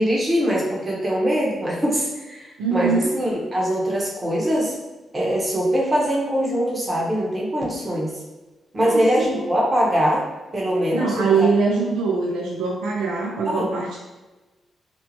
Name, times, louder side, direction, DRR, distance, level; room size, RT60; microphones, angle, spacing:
voice 1, 0.0-4.7 5.1-8.1 8.7-10.3 10.5-11.5 13.4-13.7, equal, 35° right, -3 dB, 0.9 m, -22 dB
voice 2, 2.6-3.1 8.8-9.5 10.9-14.0, right 4 dB, 85° right, -2 dB, 0.3 m, -23 dB
2.8 x 2.1 x 2.8 m, 1.1 s
supercardioid pair, 45°, 0 cm